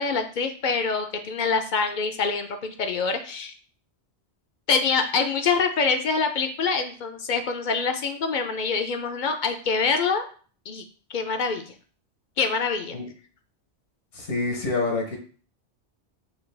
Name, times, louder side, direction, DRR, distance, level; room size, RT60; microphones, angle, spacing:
voice 1, 0.0-3.5 4.7-10.3 10.7-10.8 11.1-11.6 12.4-13.0, left 5 dB, 55° left, 6 dB, 0.6 m, -25 dB
voice 2, 14.1-15.2, left 3 dB, 80° left, 1 dB, 1.3 m, -27 dB
6.4 x 2.3 x 3.3 m, 0.41 s
omnidirectional pair, 1.2 m